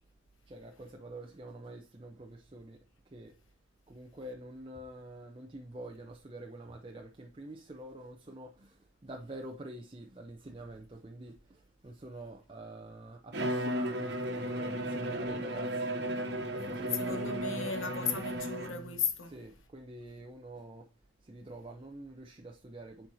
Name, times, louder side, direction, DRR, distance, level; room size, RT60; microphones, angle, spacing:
voice 1, 0.5-2.8 3.1-3.3 3.9-16.1 16.5-17.5 19.3-20.9 21.2-23.1, right 1 dB, 25° right, 0.5 m, -46 dB
Bowed string instrument, 13.3-19.0, right 1 dB, 55° right, 1.2 m, -35 dB
voice 2, 16.6-19.4, left 6 dB, 90° left, 1.1 m, -36 dB
8.4 x 4.5 x 2.7 m
head